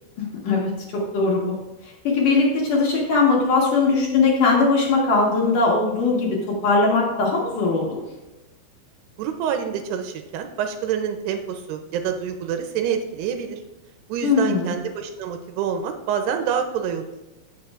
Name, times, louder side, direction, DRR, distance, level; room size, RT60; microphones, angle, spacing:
voice 1, 0.2-0.7 1.1-1.6 1.8-8.0 14.2-14.7, left 4 dB, 60° left, -3 dB, 2.6 m, -20 dB
voice 2, 9.2-13.6 14.1-17.1, right 8 dB, 80° right, 6 dB, 2.6 m, -27 dB
15.5 x 6.4 x 2.4 m, 1.0 s
omnidirectional pair, 5.0 m